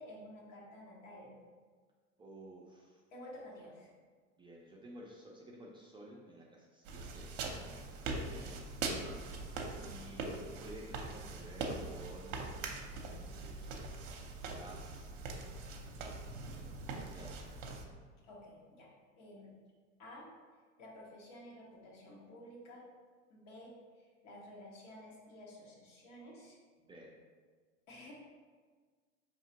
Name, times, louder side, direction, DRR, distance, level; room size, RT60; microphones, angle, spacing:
voice 1, 0.0-1.4 3.1-3.9 9.7-10.2 18.3-18.9 19.2-19.5 20.0-20.3 20.8-22.9 23.3-26.6 27.9-28.1, left 1 dB, 70° left, -3 dB, 1.3 m, -52 dB
voice 2, 2.2-3.0 4.4-7.3 8.3-9.1 9.9-10.3 10.6-12.5 13.4-13.9 14.4-15.1 16.4-17.8 26.8-27.1, right 1 dB, 15° right, -3 dB, 0.4 m, -53 dB
sound 1, 6.9-17.9, right 3 dB, 50° right, 0.7 m, -42 dB
4.8 x 2.9 x 2.8 m, 1.5 s
hypercardioid pair, 95°, 39 cm